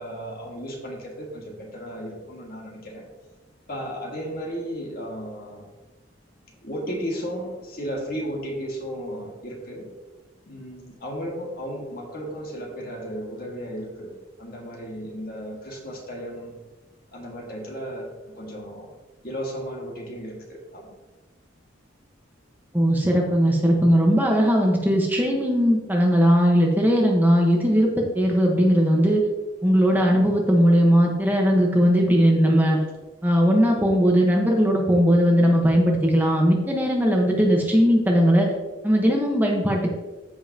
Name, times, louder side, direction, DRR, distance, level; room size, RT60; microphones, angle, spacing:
voice 1, 0.0-3.1 3.7-5.7 6.6-9.9 10.5-16.5 17.1-18.9 19.2-21.0, equal, 50° left, 0 dB, 1.9 m, -34 dB
voice 2, 22.7-29.2 29.6-32.8 33.2-38.5 38.8-39.9, equal, 10° right, -1 dB, 1.1 m, -19 dB
14.0 x 5.5 x 2.8 m, 1.2 s
head